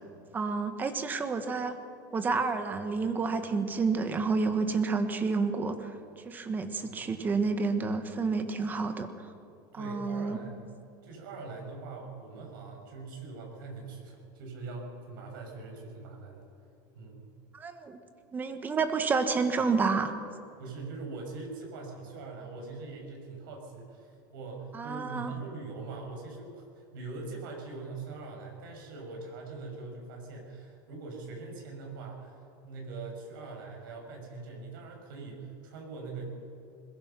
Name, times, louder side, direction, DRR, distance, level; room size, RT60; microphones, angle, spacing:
voice 1, 0.3-1.8 2.1-5.9 6.2-9.1 9.7-10.4 17.5-18.0 18.3-20.2 24.7-25.3, right 4 dB, 15° right, 9 dB, 1.3 m, -29 dB
voice 2, 6.8-7.1 9.7-10.6 11.0-16.5 16.9-17.3 20.6-36.4, right 3 dB, 85° right, 1 dB, 6.7 m, -42 dB
21.5 x 21.0 x 5.9 m, 2.5 s
supercardioid pair, 165°, 11 cm